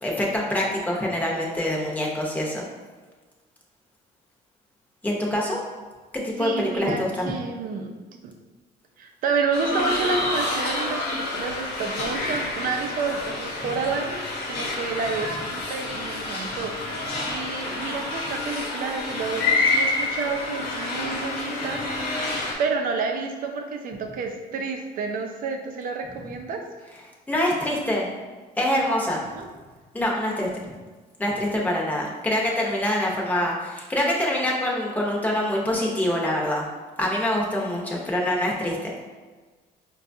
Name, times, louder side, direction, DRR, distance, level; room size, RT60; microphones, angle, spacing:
voice 1, 0.0-2.6 5.0-5.6 6.1-7.3 27.3-28.1 28.6-29.2 29.9-30.5 31.2-36.6 37.0-38.9, left 1 dB, 10° left, -3 dB, 0.8 m, -25 dB
voice 2, 6.4-7.9 8.2-8.3 9.0-22.2 22.6-26.6 29.3-29.5, right 4 dB, 55° right, 3 dB, 0.5 m, -30 dB
sound 1, 9.5-22.5, left 2 dB, 70° left, 0.9 m, -28 dB
4.6 x 2.3 x 2.6 m, 1.3 s
cardioid pair, 110°, 17 cm